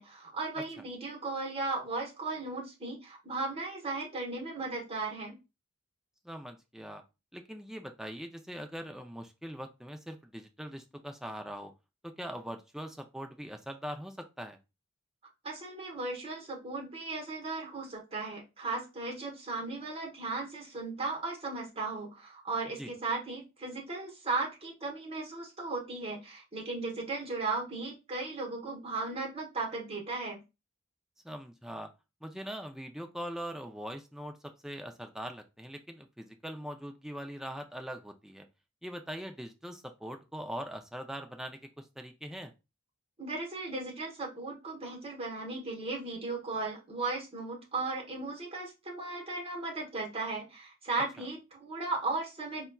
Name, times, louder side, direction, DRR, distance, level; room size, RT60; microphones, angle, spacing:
voice 1, 0.0-5.4 15.4-30.4 43.2-52.7, right 3 dB, 30° right, 0 dB, 1.1 m, -36 dB
voice 2, 6.2-7.0 7.3-11.7 12.0-14.6 22.8-22.9 31.2-31.9 32.2-38.5 38.8-42.5 51.2-51.3, equal, ahead, 4 dB, 0.4 m, -42 dB
4.0 x 2.3 x 2.3 m, 0.26 s
head